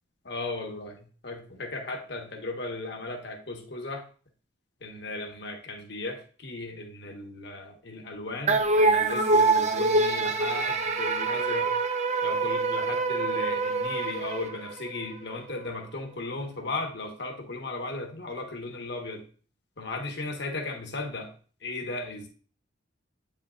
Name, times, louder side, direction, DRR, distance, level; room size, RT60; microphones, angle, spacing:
voice 1, 0.3-4.0 4.8-11.7 12.2-19.2 19.8-21.3 21.6-22.3, left 2 dB, 60° left, 2 dB, 1.3 m, -36 dB
sound 1, 8.5-15.0, right 3 dB, 35° right, 0.6 m, -25 dB
8.6 x 5.6 x 2.5 m, 0.40 s
head